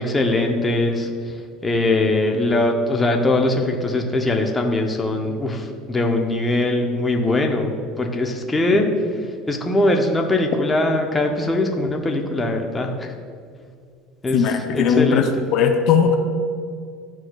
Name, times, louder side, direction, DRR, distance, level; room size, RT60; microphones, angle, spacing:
voice 1, 0.0-13.1 14.2-15.3, left 2 dB, 15° left, 2 dB, 0.6 m, -21 dB
voice 2, 14.3-15.2 15.5-16.2, left 7 dB, 55° left, 5 dB, 0.5 m, -18 dB
11.5 x 4.4 x 2.3 m, 2.2 s
supercardioid pair, 130°, 0 cm